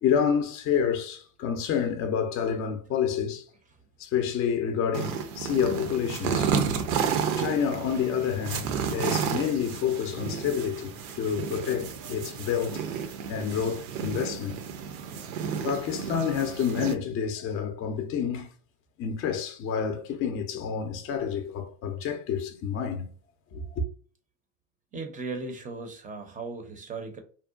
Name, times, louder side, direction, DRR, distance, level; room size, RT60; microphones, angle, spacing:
voice 1, 0.0-3.4 4.0-6.5 7.4-12.8 13.3-14.6 15.6-18.5 19.0-23.1 23.5-23.8, left 7 dB, 35° left, 0.5 m, -28 dB
sound 1, 4.9-16.9, right 7 dB, 70° right, 0.6 m, -31 dB
voice 2, 24.9-27.2, right 3 dB, 20° right, 0.5 m, -37 dB
2.7 x 2.1 x 2.4 m
supercardioid pair, 105°, 39 cm